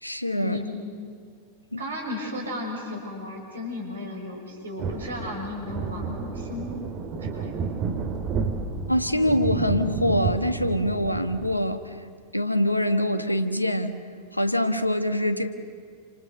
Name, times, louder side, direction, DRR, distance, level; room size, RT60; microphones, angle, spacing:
voice 1, 0.0-0.6 1.7-1.8 8.9-12.0 12.3-14.0 14.3-15.5, left 1 dB, 85° left, 9 dB, 1.5 m, -24 dB
voice 2, 1.8-7.5, left 2 dB, 70° right, 2 dB, 6.3 m, -35 dB
sound 1, 4.8-11.5, right 5 dB, 35° right, 2.6 m, -31 dB
29.0 x 26.5 x 6.7 m, 2.3 s
figure-of-eight pair, 90°, 0 cm